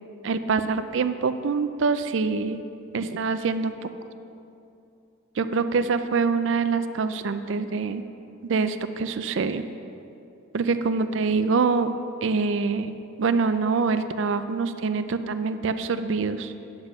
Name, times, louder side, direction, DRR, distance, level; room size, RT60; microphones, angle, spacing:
voice 1, 0.2-2.6 2.9-3.9 5.4-8.0 8.4-9.6 10.5-11.9 12.2-12.9 13.2-16.5, right 4 dB, 70° right, 10 dB, 0.4 m, -25 dB
9.6 x 6.1 x 6.4 m, 2.6 s
head